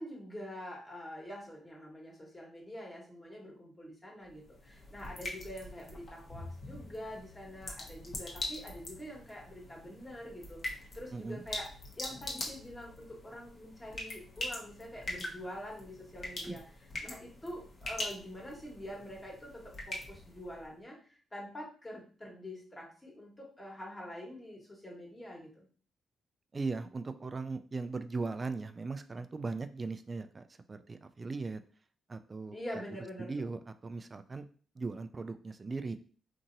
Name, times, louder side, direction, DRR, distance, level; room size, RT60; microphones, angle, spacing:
voice 1, 0.0-11.7 12.0-16.6 17.0-25.7 32.5-33.5, equal, 20° left, -2 dB, 1.3 m, -45 dB
sound 1, 4.3-20.7, left 1 dB, 50° left, 0.9 m, -43 dB
voice 2, 11.1-11.4 16.4-16.6 26.5-30.4 30.7-31.6 32.1-32.6 33.2-34.5 34.8-36.0, right 3 dB, 35° right, 10 dB, 0.3 m, -38 dB
2.9 x 2.7 x 2.5 m, 0.40 s
cardioid pair, 75°, 0 cm